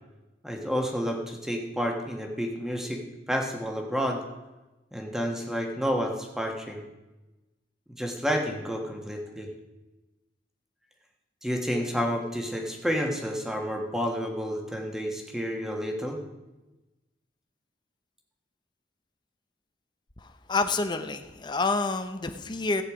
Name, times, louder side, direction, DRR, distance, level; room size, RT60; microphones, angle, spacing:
voice 1, 0.4-3.0 3.3-4.2 4.9-6.8 8.0-9.5 11.4-16.2, equal, 5° right, 2 dB, 1.5 m, -30 dB
voice 2, 20.2-22.8, left 3 dB, 25° left, 7 dB, 0.8 m, -28 dB
14.5 x 9.0 x 5.0 m, 1.1 s
head